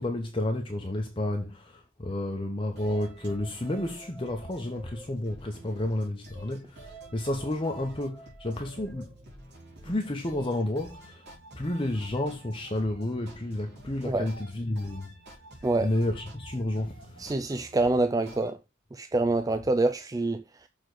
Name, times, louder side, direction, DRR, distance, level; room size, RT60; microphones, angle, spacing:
voice 1, 0.0-9.1 9.8-11.3 11.6-15.1 15.8-17.3, left 1 dB, 25° left, 0.9 m, -31 dB
sound 1, 2.8-18.5, right 1 dB, 55° right, 3.7 m, -49 dB
voice 2, 17.2-18.6 18.9-20.7, right 2 dB, 15° right, 0.4 m, -26 dB
6.9 x 3.8 x 6.1 m
head